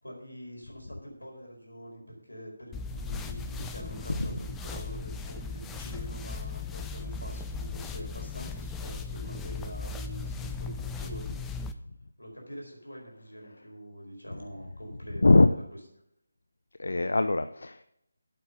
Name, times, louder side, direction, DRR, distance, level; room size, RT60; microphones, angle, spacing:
voice 1, 0.0-11.4 12.2-15.6, equal, 90° left, 0 dB, 4.6 m, -45 dB
sound 1, 2.7-11.7, left 4 dB, 10° left, 0.5 m, -37 dB
voice 2, 16.8-17.8, left 2 dB, 65° left, 10 dB, 0.5 m, -22 dB
8.4 x 8.0 x 6.7 m, 0.78 s
figure-of-eight pair, 155°, 0 cm